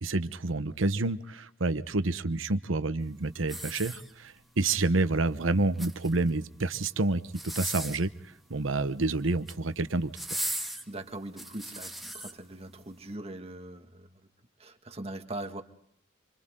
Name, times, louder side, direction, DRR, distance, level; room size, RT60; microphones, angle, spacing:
voice 1, 0.0-8.1 8.5-10.1, right 2 dB, 80° right, 12 dB, 1.1 m, -28 dB
sound 1, 3.4-4.5 5.6-6.3 7.3-8.1 9.2-9.6 10.1-12.3 12.9-13.0, right 1 dB, ahead, 1.9 m, -37 dB
voice 2, 10.9-14.1 14.6-15.6, right 2 dB, 30° right, 6 dB, 2.0 m, -41 dB
28.0 x 26.0 x 3.8 m, 0.67 s
head